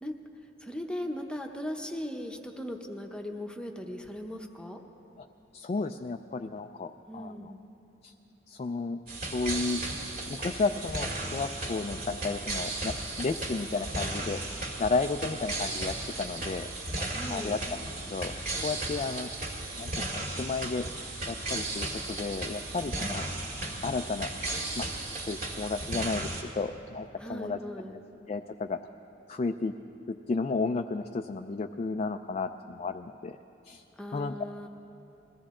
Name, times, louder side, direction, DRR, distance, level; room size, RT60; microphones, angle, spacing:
voice 1, 0.6-4.8 7.1-7.6 17.1-17.6 27.2-27.9 34.0-34.7, left 1 dB, 5° left, 3 dB, 0.8 m, -38 dB
voice 2, 5.5-7.5 8.0-8.1 8.5-9.8 10.3-14.4 14.8-16.7 17.3-17.6 18.1-18.4 18.6-19.3 19.8-20.9 21.3-23.3 23.8-24.3 24.8-24.9 25.3-27.6 28.3-28.8 29.3-29.7 30.1-33.4 33.6-33.8 34.1-34.3, left 4 dB, 35° left, 6 dB, 0.3 m, -33 dB
sound 1, 9.1-26.4, right 2 dB, 55° right, 2.0 m, -35 dB
21.5 x 15.5 x 3.7 m, 2.9 s
head